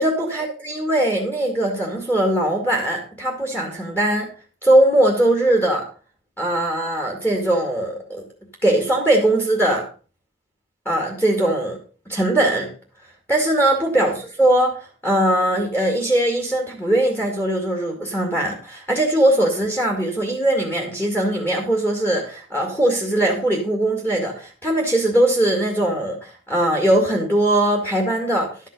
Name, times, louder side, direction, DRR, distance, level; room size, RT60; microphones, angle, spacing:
voice 1, 0.0-4.3 4.6-5.9 6.4-8.2 8.6-9.9 10.9-11.8 12.1-12.7 13.3-28.5, right 1 dB, 10° left, 0 dB, 2.1 m, -20 dB
12.0 x 5.9 x 5.4 m, 0.38 s
head